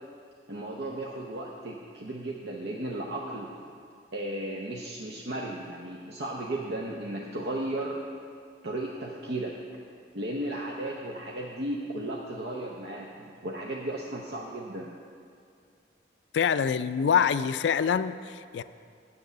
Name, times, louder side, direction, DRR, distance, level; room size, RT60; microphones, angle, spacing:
voice 1, 0.5-3.5 4.1-8.0 8.6-9.5 10.1-14.9, right 1 dB, 65° right, -2 dB, 0.8 m, -35 dB
voice 2, 16.3-18.6, left 7 dB, 75° left, 13 dB, 0.3 m, -25 dB
7.9 x 6.9 x 8.1 m, 2.3 s
head